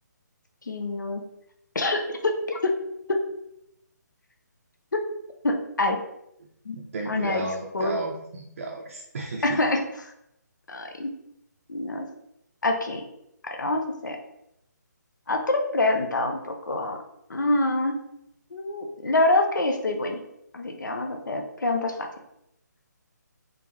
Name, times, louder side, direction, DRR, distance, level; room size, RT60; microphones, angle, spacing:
voice 1, 0.7-1.2 1.7-2.7 3.1-3.2 5.4-6.0 6.7-6.8 7.1-7.4 7.7-8.0 9.4-9.8 10.7-11.1 11.7-12.1 12.6-13.0 13.4-14.2 15.3-17.0 17.3-18.0 18.5-20.2 20.5-22.1, left 2 dB, 75° left, 3 dB, 0.7 m, -26 dB
voice 2, 6.7-9.6, right 2 dB, 50° right, 1 dB, 0.5 m, -34 dB
3.8 x 3.5 x 3.0 m, 0.80 s
figure-of-eight pair, 145°, 10 cm